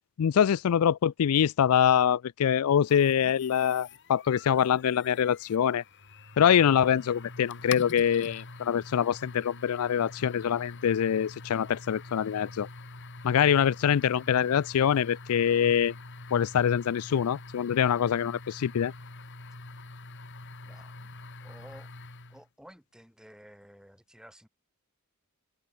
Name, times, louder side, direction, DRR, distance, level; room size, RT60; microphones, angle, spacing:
voice 1, 0.2-5.8 6.4-12.7 13.2-15.9 16.3-18.9, left 8 dB, 75° left, 0.4 m, -24 dB
sound 1, 2.9-22.5, left 3 dB, 55° left, 2.6 m, -45 dB
voice 2, 20.6-21.9 22.3-24.5, equal, 5° right, 3.3 m, -53 dB
head